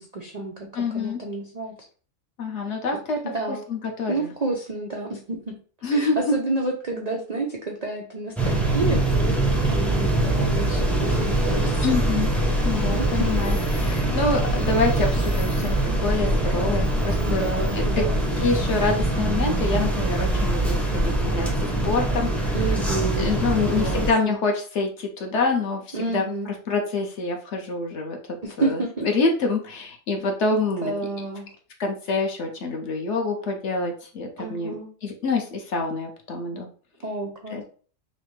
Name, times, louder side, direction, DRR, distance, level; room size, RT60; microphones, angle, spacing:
voice 1, 0.0-1.8 3.3-3.6 4.1-5.6 5.9-12.0 13.0-13.4 17.2-18.3 22.5-23.3 23.6-24.4 25.9-26.5 28.4-29.1 30.5-31.5 34.4-34.9 37.0-37.6, right 2 dB, 75° right, 1 dB, 0.3 m, -30 dB
voice 2, 0.7-1.2 2.4-3.2 3.7-4.3 5.8-6.3 11.8-12.3 12.6-17.5 17.7-18.0 18.4-21.5 21.8-22.6 23.2-25.8 26.1-26.2 26.7-28.2 28.6-30.9 31.8-34.8 35.0-36.7 37.5-37.6, left 3 dB, 55° left, 2 dB, 0.9 m, -26 dB
sound 1, 8.4-24.1, right 1 dB, ahead, 0.3 m, -23 dB
5.7 x 2.1 x 3.1 m, 0.41 s
omnidirectional pair, 1.6 m